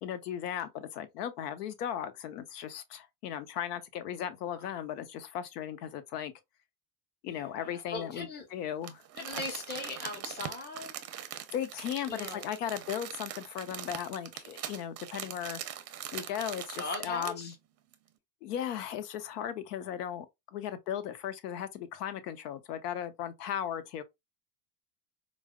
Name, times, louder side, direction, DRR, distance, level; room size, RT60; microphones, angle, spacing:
voice 1, 0.0-6.3 7.2-9.0 9.3-9.4 11.5-15.6 16.1-17.5 18.4-20.3 20.5-24.0, left 10 dB, 75° left, 0.7 m, -37 dB
voice 2, 7.3-8.4 9.2-10.9 12.1-12.4 16.8-17.5, left 3 dB, 20° left, 1.0 m, -39 dB
Crumpling crinkling, 8.8-17.5 17.9-18.0, right 10 dB, 35° right, 0.6 m, -42 dB
4.6 x 2.0 x 2.2 m
hypercardioid pair, 85°, 47 cm